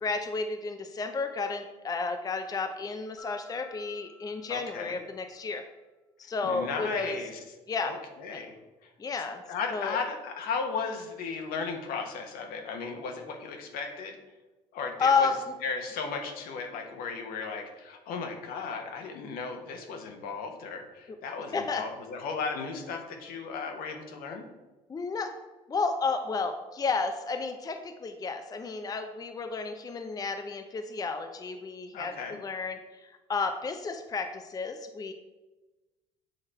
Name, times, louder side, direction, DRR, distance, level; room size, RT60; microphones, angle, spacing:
voice 1, 0.0-5.6 6.2-7.2 7.7-7.9 8.3-8.4 9.0-9.4 9.7-10.0 15.0-15.4 21.5-21.8 24.9-25.3 25.7-35.1, left 4 dB, 25° left, 6 dB, 0.5 m, -32 dB
Mallet percussion, 3.2-5.6, left 1 dB, 5° right, 1.5 m, -55 dB
voice 2, 4.5-5.0 6.4-7.4 7.8-8.5 9.5-14.2 14.7-15.3 15.6-24.4 31.9-32.4, left 5 dB, 65° left, 4 dB, 1.1 m, -35 dB
7.7 x 3.2 x 4.3 m, 1.2 s
supercardioid pair, 75°, 16 cm